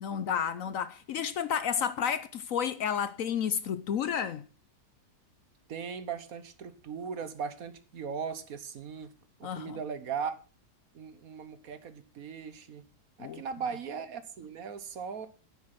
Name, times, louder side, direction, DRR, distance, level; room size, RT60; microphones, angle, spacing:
voice 1, 0.0-4.4 9.4-9.8 13.2-13.4, left 8 dB, 65° left, 1.0 m, -31 dB
voice 2, 5.7-9.1 9.4-10.3 10.9-12.8 13.2-15.3, right 6 dB, 60° right, 1.4 m, -38 dB
9.4 x 8.4 x 6.0 m
omnidirectional pair, 1.8 m